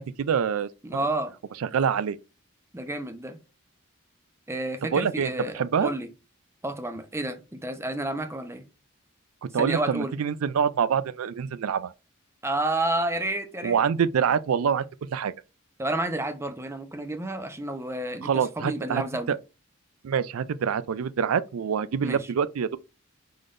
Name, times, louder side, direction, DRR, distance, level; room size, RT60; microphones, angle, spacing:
voice 1, 0.0-0.7 1.6-2.2 4.9-5.9 9.4-11.9 13.6-15.3 18.2-19.4 20.0-22.8, right 7 dB, 85° right, 0.4 m, -26 dB
voice 2, 0.8-1.3 2.7-3.4 4.5-6.1 6.6-8.6 9.6-10.2 12.4-13.8 15.8-18.3 18.6-19.3 22.0-22.2, right 1 dB, 15° right, 0.7 m, -30 dB
5.0 x 3.8 x 2.5 m
head